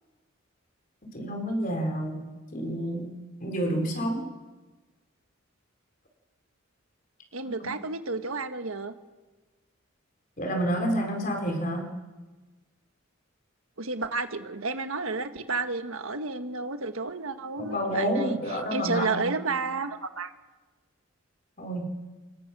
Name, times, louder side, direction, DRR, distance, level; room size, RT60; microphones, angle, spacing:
voice 1, 1.1-4.3 7.6-7.7 10.4-11.9 17.6-19.2 21.6-21.9, equal, 40° left, 3 dB, 4.6 m, -29 dB
voice 2, 7.3-9.0 13.8-20.3, right 3 dB, 90° right, 8 dB, 1.5 m, -31 dB
27.0 x 21.0 x 6.2 m, 1.2 s
head